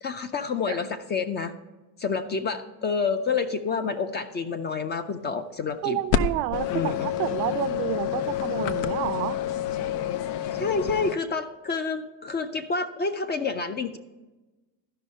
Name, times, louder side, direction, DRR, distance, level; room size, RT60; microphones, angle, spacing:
voice 1, 0.0-1.5 2.0-6.0 6.7-7.1 10.5-14.0, left 5 dB, 25° left, 9 dB, 0.3 m, -28 dB
voice 2, 5.8-9.4, right 15 dB, 85° right, 12 dB, 0.7 m, -29 dB
sound 1, 6.1-11.2, left 10 dB, 85° left, 0.7 m, -28 dB
12.5 x 5.5 x 5.3 m, 1.1 s
supercardioid pair, 115°, 49 cm